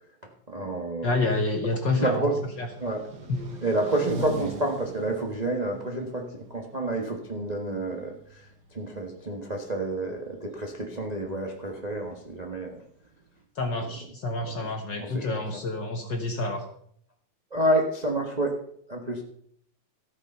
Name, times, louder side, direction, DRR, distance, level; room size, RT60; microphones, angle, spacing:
voice 1, 0.5-1.1 2.0-2.4 2.8-3.0 3.6-8.1 8.7-12.7 15.0-15.4 17.5-18.6 18.9-19.2, right 1 dB, 30° right, 2 dB, 0.8 m, -29 dB
voice 2, 1.0-2.7 3.3-3.5 13.5-16.6, left 2 dB, 50° left, 4 dB, 1.5 m, -28 dB
sound 1, 2.4-13.4, right 2 dB, 45° right, 1.6 m, -42 dB
14.5 x 8.5 x 5.5 m, 0.64 s
omnidirectional pair, 3.3 m